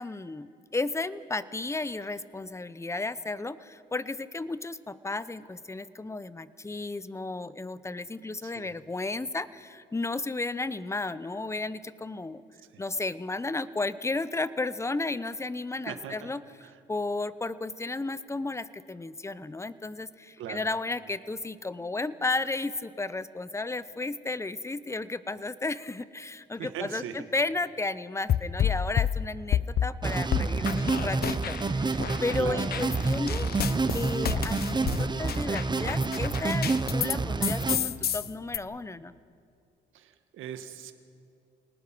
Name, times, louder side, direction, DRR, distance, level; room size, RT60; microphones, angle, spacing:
voice 1, 0.0-12.4 12.8-16.4 16.9-33.5 33.8-39.1, left 3 dB, 15° left, 15 dB, 0.8 m, -33 dB
voice 2, 15.9-16.3 16.6-16.8 20.4-20.7 26.6-27.1 32.3-32.7 39.9-40.9, right 9 dB, 85° right, 7 dB, 1.7 m, -39 dB
sound 1, 28.3-29.9 30.3-31.7 32.0-37.2 37.4-38.6, left 9 dB, 50° left, 0.7 m, -29 dB
sound 2, 30.0-37.8, right 3 dB, 20° right, 1.0 m, -28 dB
28.5 x 19.0 x 6.1 m, 2.4 s
cardioid pair, 90°, 20 cm